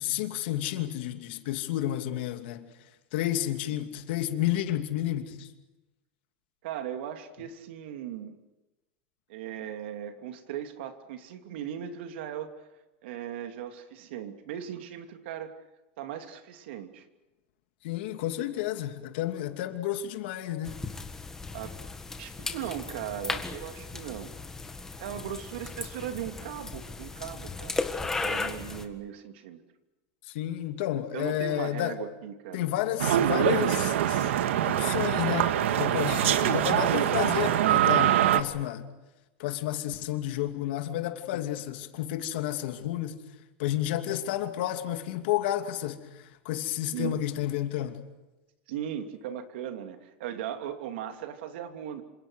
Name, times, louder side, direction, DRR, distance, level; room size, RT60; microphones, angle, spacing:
voice 1, 0.0-2.7 3.1-5.5 17.8-20.8 30.3-32.0 32.5-34.3 34.6-38.9 39.4-43.2 43.6-48.0, left 13 dB, 60° left, 2.8 m, -31 dB
voice 2, 6.6-8.4 9.3-12.5 13.0-15.5 16.0-17.0 21.5-21.8 22.2-24.3 25.0-27.8 28.2-29.6 31.1-32.7 46.9-47.2 48.7-52.0, right 10 dB, 65° right, 2.9 m, -38 dB
sound 1, 20.6-28.9, left 3 dB, 10° left, 1.7 m, -36 dB
sound 2, 33.0-38.4, right 11 dB, 90° right, 1.8 m, -24 dB
28.0 x 26.5 x 6.5 m
supercardioid pair, 165°, 6 cm